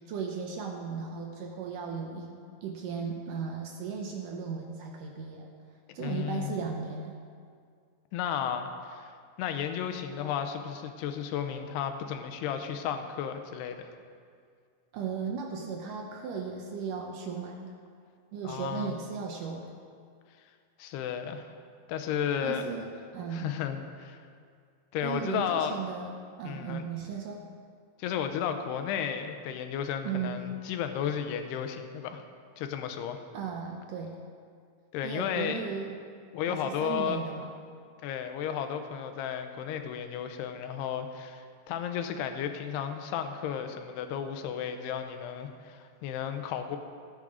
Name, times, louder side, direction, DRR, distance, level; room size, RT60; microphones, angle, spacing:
voice 1, 0.0-5.5 5.9-7.2 14.9-17.8 18.3-19.7 22.4-23.6 25.0-27.4 30.0-30.4 33.3-34.2 35.0-36.0 36.5-37.5, right 6 dB, 75° right, 2 dB, 2.1 m, -36 dB
voice 2, 6.0-6.5 8.1-9.1 9.4-13.9 18.4-18.9 20.8-21.5 21.9-22.6 23.3-24.2 24.9-25.8 26.4-26.8 28.0-32.2 32.6-33.2 34.9-35.7 36.3-37.2 38.0-46.8, left 8 dB, 90° left, 7 dB, 2.9 m, -33 dB
16.0 x 10.0 x 4.9 m, 2.2 s
omnidirectional pair, 4.6 m